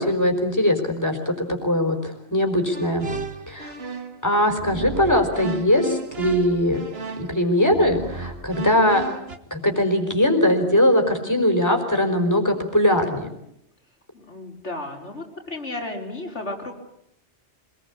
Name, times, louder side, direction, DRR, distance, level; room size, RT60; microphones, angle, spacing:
voice 1, 0.0-3.1 3.5-3.7 4.2-6.8 7.2-9.0 9.5-13.3, left 1 dB, 15° left, 5 dB, 4.8 m, -21 dB
sound 1, 2.7-4.2 4.6-9.4, right 3 dB, 60° right, 2.1 m, -33 dB
voice 2, 14.1-16.8, left 2 dB, 80° left, 2 dB, 5.3 m, -33 dB
26.5 x 20.5 x 8.5 m, 0.76 s
omnidirectional pair, 1.2 m